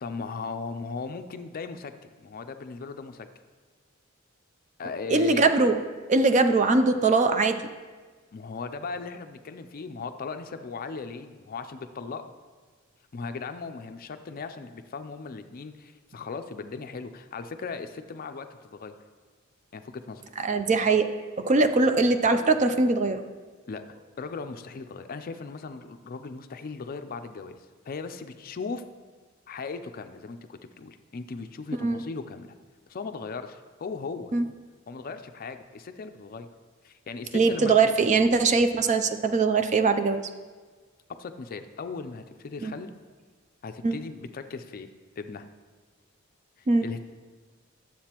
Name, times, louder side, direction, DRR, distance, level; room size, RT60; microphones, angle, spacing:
voice 1, 0.0-1.9 2.2-3.3 4.8-5.5 8.3-12.3 13.1-18.9 19.7-20.2 23.7-27.6 27.9-28.8 29.5-32.5 32.9-34.3 34.9-36.5 36.8-37.9 41.1-42.9 43.6-44.9 45.2-45.4 46.6-47.1, left 4 dB, 45° left, 9 dB, 0.4 m, -37 dB
voice 2, 5.1-5.7 6.1-7.6 20.4-21.1 21.4-23.2 31.8-32.0 34.3-34.4 37.3-40.2 42.6-42.7 43.8-44.0 46.7-46.9, right 3 dB, 35° right, 8 dB, 0.4 m, -21 dB
11.5 x 7.3 x 2.9 m, 1.4 s
head